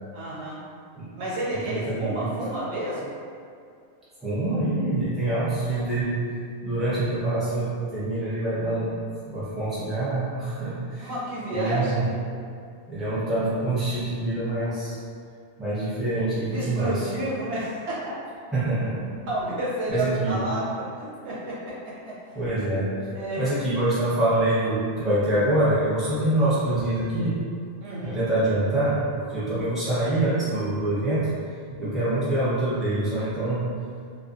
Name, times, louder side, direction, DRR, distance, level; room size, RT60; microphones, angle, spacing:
voice 1, 0.1-0.6 1.2-3.1 5.6-5.9 11.0-12.2 16.4-18.2 19.3-22.2 23.1-23.4 27.8-28.2, right 1 dB, 80° right, -7 dB, 1.0 m, -31 dB
voice 2, 1.5-2.3 4.2-6.2 6.6-11.1 11.5-12.1 12.9-15.0 15.6-17.1 18.5-19.1 19.9-20.4 22.3-22.9 23.4-27.4 28.0-31.3 31.8-33.6, right 1 dB, ahead, -13 dB, 0.6 m, -25 dB
2.5 x 2.2 x 2.5 m, 2.3 s
omnidirectional pair, 1.1 m